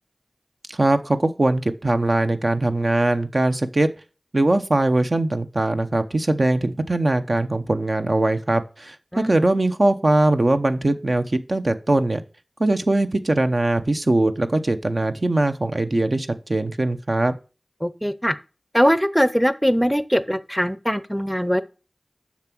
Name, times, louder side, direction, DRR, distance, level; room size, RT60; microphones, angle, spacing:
voice 1, 0.7-3.9 4.3-12.2 12.6-17.3, right 2 dB, 55° right, 8 dB, 0.8 m, -21 dB
voice 2, 17.8-18.3 18.7-21.6, equal, 5° left, 15 dB, 0.6 m, -21 dB
7.3 x 6.0 x 6.0 m, 0.34 s
wide cardioid pair, 45°, 0 cm